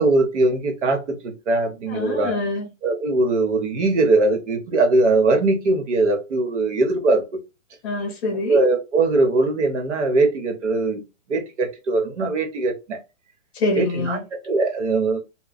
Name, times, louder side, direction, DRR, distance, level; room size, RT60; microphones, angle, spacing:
voice 1, 0.0-2.4 2.8-7.2 8.5-11.0 11.3-13.0 13.7-14.2 14.5-15.2, right 2 dB, 65° right, 1.2 m, -21 dB
voice 2, 1.9-2.7 7.8-8.6 13.5-14.2, left 3 dB, 25° left, 0.8 m, -25 dB
2.3 x 2.2 x 3.9 m
hypercardioid pair, 170°, 38 cm